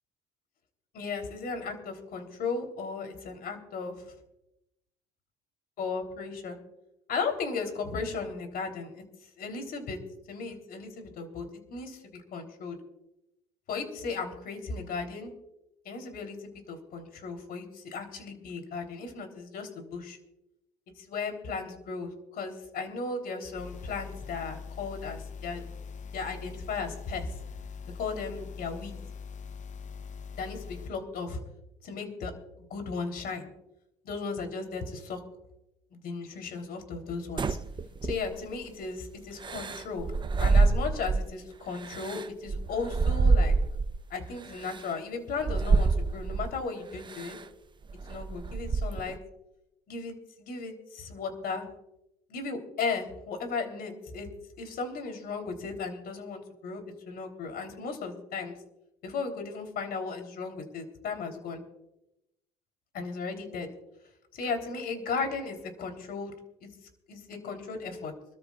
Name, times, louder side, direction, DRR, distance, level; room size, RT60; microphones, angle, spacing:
voice 1, 0.9-3.9 5.8-6.6 7.1-9.0 9.4-10.0 10.3-11.4 11.7-12.8 13.7-15.3 15.9-20.2 21.0-25.6 26.1-27.3 28.0-29.0 30.3-31.4 31.8-32.3 32.6-33.5 34.0-35.2 35.9-37.6 38.0-40.1 40.4-43.5 44.1-47.4 48.1-49.2 49.9-51.6 52.3-54.3 54.6-58.6 59.0-61.6 62.9-63.7 64.3-66.4 66.6-66.7 67.1-68.1, left 4 dB, 65° left, 5 dB, 3.5 m, -36 dB
sound 1, 23.5-30.9, left 5 dB, 45° left, 0.8 m, -42 dB
sound 2, 37.4-38.6 39.4-41.3 41.8-44.0 44.7-44.8 45.4-46.5 47.1-47.4 47.8-49.2, right 4 dB, 25° right, 0.7 m, -26 dB
26.5 x 13.5 x 2.4 m, 0.87 s
cardioid pair, 110°, 17 cm